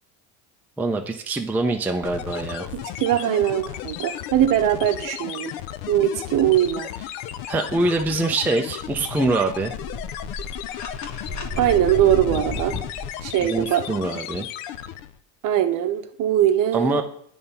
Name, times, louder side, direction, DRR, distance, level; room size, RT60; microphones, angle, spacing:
voice 1, 0.8-2.7 7.5-9.7 13.4-14.5 16.7-17.0, right 2 dB, 5° right, 3 dB, 0.5 m, -24 dB
sound 1, 2.0-15.2, left 11 dB, 75° left, 0.6 m, -34 dB
voice 2, 2.7-5.5 5.9-6.9 11.6-12.7 13.2-13.8 15.4-17.0, right 11 dB, 45° right, 9 dB, 0.9 m, -21 dB
sound 2, 9.7-13.1, left 2 dB, 45° left, 1.4 m, -32 dB
8.6 x 3.5 x 5.4 m, 0.66 s
supercardioid pair, 105°, 43 cm